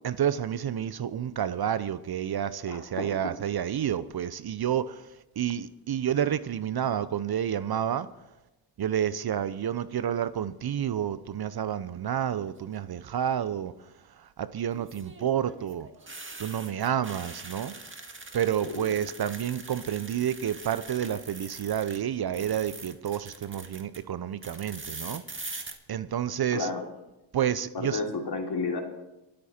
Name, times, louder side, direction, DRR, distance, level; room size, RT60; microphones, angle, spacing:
voice 1, 0.0-8.1 8.8-15.9 16.4-17.7 18.3-25.6 25.9-26.7 27.3-28.0, right 9 dB, 50° right, 0.7 m, -30 dB
voice 2, 2.7-3.0 18.7-18.9 26.5-26.8 27.7-28.8, left 3 dB, 50° left, 3.1 m, -31 dB
sound 1, 12.4-12.8 14.7-22.0 22.3-24.0 24.4-25.7, right 3 dB, 25° right, 2.0 m, -43 dB
23.5 x 8.6 x 4.4 m
cardioid pair, 55°, 49 cm